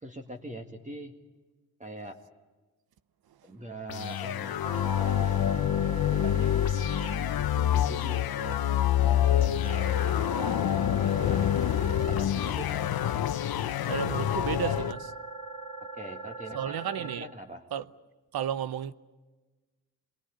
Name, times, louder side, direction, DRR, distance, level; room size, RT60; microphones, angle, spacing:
voice 1, 0.0-1.2 1.8-2.2 3.4-6.6 7.4-9.6 10.0-10.6 11.0-13.2 13.8-14.8 16.0-17.6, right 1 dB, 20° right, 2.0 m, -43 dB
sound 1, 3.9-14.9, left 11 dB, 75° left, 0.9 m, -27 dB
sound 2, 4.6-7.1 9.6-12.1 14.6-17.1, right 3 dB, 50° right, 6.4 m, -41 dB
voice 2, 13.9-15.0 16.5-17.3 17.7-17.8 18.3-18.9, right 9 dB, 75° right, 0.8 m, -32 dB
25.0 x 22.0 x 8.4 m
cardioid pair, 65°, 37 cm